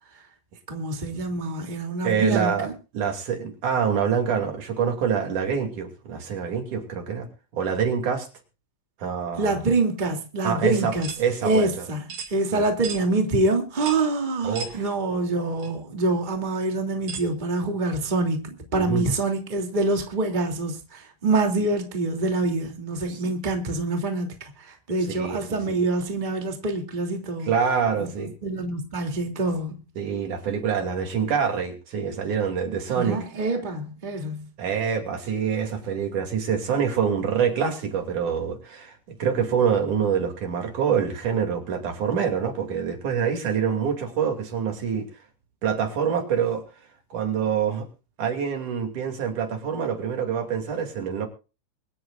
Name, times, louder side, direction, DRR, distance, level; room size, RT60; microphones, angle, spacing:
voice 1, 0.7-2.7 9.4-11.1 11.4-27.5 28.0-28.1 28.4-29.8 32.9-34.5, right 2 dB, 15° right, 2.6 m, -26 dB
voice 2, 2.0-2.7 2.9-7.3 7.5-8.3 9.0-9.6 10.4-11.9 12.5-12.6 14.4-14.9 18.7-19.0 23.1-23.3 25.1-25.8 27.4-28.3 30.0-33.3 34.6-45.1 45.6-46.6 47.1-47.9 48.2-51.3, right 7 dB, 65° right, 4.1 m, -26 dB
sound 1, 11.0-11.2 12.1-12.3 12.8-13.0 13.8-14.1 14.5-14.8 15.6-15.7 17.1-17.3, right 5 dB, 90° right, 4.3 m, -35 dB
24.0 x 13.0 x 2.5 m
omnidirectional pair, 3.9 m